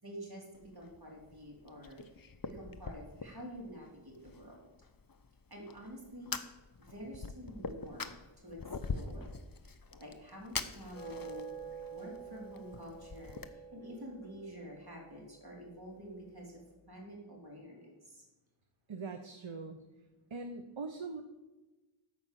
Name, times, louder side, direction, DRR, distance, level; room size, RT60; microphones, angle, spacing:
voice 1, 0.0-4.6 5.5-6.4 6.8-8.1 8.4-8.6 8.9-9.3 9.6-11.5 11.9-16.6 16.9-18.3, equal, 50° right, -2 dB, 3.8 m, -48 dB
Fire, 0.5-13.5, left 4 dB, 45° left, 0.7 m, -45 dB
sound 1, 10.9-16.4, right 5 dB, 30° left, 2.8 m, -49 dB
voice 2, 18.9-19.8 20.3-21.2, right 4 dB, 70° right, 6 dB, 0.9 m, -42 dB
13.5 x 5.2 x 7.5 m, 1.1 s
wide cardioid pair, 40°, 48 cm